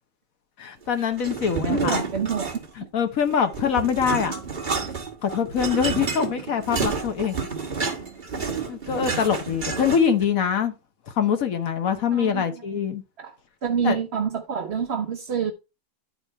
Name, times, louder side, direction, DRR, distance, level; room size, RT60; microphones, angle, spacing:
voice 1, 0.6-2.0 2.8-4.3 5.2-7.4 8.7-10.7 11.2-13.0 13.8-14.0, left 7 dB, 55° left, 1.1 m, -24 dB
sound 1, 1.2-2.9 3.2-10.2, right 5 dB, 25° right, 1.4 m, -30 dB
voice 2, 1.6-2.6 12.1-12.6 13.2-13.3 13.6-15.5, right 7 dB, 55° right, 0.7 m, -27 dB
10.0 x 4.3 x 4.3 m
omnidirectional pair, 2.1 m